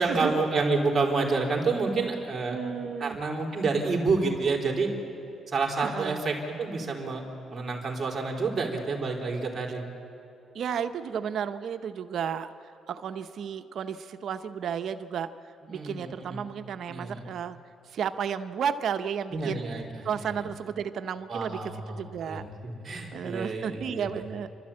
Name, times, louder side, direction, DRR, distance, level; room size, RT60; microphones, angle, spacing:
voice 1, 0.0-2.6 3.0-4.9 5.5-7.2 7.5-9.8 15.7-16.4 16.9-17.3 19.3-20.3 21.3-24.1, right 3 dB, 35° right, 0 dB, 4.1 m, -29 dB
voice 2, 2.5-3.2 5.8-6.2 10.5-12.5 12.9-15.3 15.7-17.6 17.9-19.6 20.0-22.4 23.1-24.5, right 7 dB, 65° right, 10 dB, 0.8 m, -33 dB
30.0 x 13.0 x 8.7 m, 2.7 s
cardioid pair, 90°, 0 cm